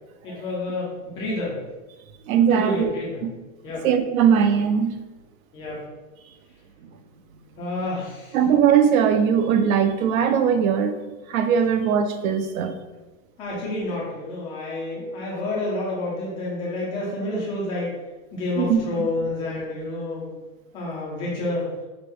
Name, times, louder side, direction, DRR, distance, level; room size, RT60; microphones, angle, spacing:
voice 1, 0.2-1.6 2.5-3.2 3.6-3.9 5.5-5.8 7.6-8.4 13.4-17.9 18.3-20.3 20.7-21.7, left 2 dB, 10° left, -5 dB, 0.3 m, -29 dB
voice 2, 2.3-2.9 3.2-3.3 3.8-5.0 8.3-11.0 11.3-12.8 18.6-19.1, right 7 dB, 70° right, 9 dB, 0.6 m, -20 dB
5.2 x 2.0 x 4.5 m, 1.2 s
supercardioid pair, 150°, 44 cm